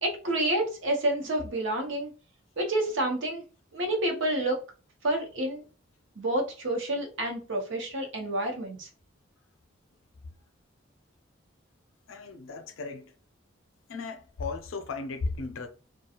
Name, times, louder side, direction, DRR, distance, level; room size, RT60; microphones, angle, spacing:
voice 1, 0.0-2.1 2.6-3.4 3.7-4.6 5.0-5.6 6.2-8.9, right 1 dB, 70° right, 0.8 m, -29 dB
voice 2, 12.1-13.1 13.9-15.7, left 3 dB, 90° left, 0.5 m, -35 dB
2.4 x 2.2 x 2.8 m
head